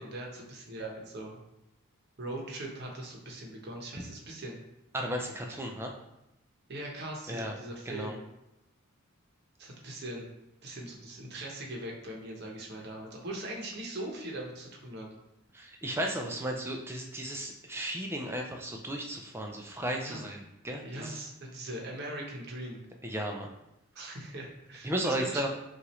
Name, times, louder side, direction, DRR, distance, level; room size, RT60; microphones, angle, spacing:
voice 1, 0.0-1.4 2.2-4.6 6.7-8.2 9.6-10.3 10.6-15.1 20.0-20.3 20.8-22.8 23.9-25.4, right 1 dB, 50° right, 0 dB, 0.8 m, -40 dB
voice 2, 4.9-5.9 7.3-7.5 7.9-8.1 15.5-21.2 23.0-23.5 24.8-25.5, right 1 dB, 10° right, 2 dB, 0.4 m, -34 dB
5.8 x 2.5 x 3.0 m, 0.89 s
head